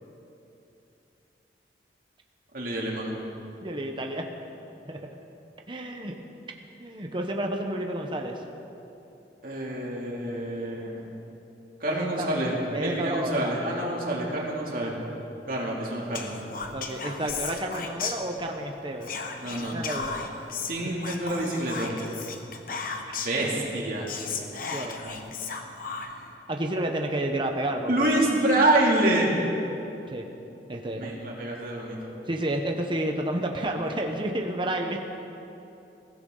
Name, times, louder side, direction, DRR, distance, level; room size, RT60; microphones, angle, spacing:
voice 1, 2.5-3.2 9.4-11.1 11.8-15.0 15.5-16.4 19.4-19.8 20.7-22.0 23.2-24.1 27.9-29.3 30.9-32.1, right 1 dB, 55° right, -3 dB, 2.7 m, -27 dB
voice 2, 3.6-4.2 4.9-5.0 5.7-6.2 6.8-8.4 11.9-12.3 12.7-13.5 16.7-19.1 19.7-20.1 23.1-23.2 24.4-25.3 26.5-28.1 30.1-30.3 30.7-31.1 32.3-35.0, right 1 dB, 30° right, 3 dB, 1.0 m, -30 dB
Whispering, 16.1-18.6 19.0-23.4 23.8-23.9 24.1-26.3, left 5 dB, 50° left, 1.2 m, -35 dB
22.5 x 16.0 x 3.9 m, 2.9 s
head